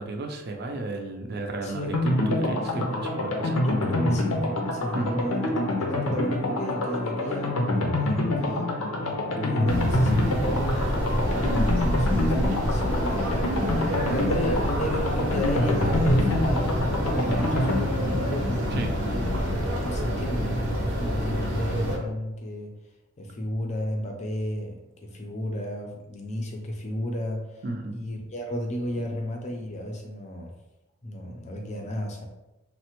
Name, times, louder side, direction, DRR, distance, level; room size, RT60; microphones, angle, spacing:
voice 1, 0.0-3.6 4.9-5.3 8.4-8.5 18.7-19.0 27.6-28.0, right 2 dB, 50° right, 3 dB, 0.4 m, -33 dB
voice 2, 1.6-1.9 2.7-3.0 3.6-5.5 5.8-8.4 9.1-19.3 19.8-22.7 23.2-27.6 27.9-30.6 31.0-32.3, equal, 35° left, 2 dB, 0.4 m, -33 dB
sound 1, 1.9-20.5 20.8-20.9 21.2-21.3, left 1 dB, 90° left, 0.6 m, -27 dB
sound 2, 9.7-22.0, equal, 85° right, 0.7 m, -27 dB
3.2 x 2.1 x 3.0 m, 0.99 s
head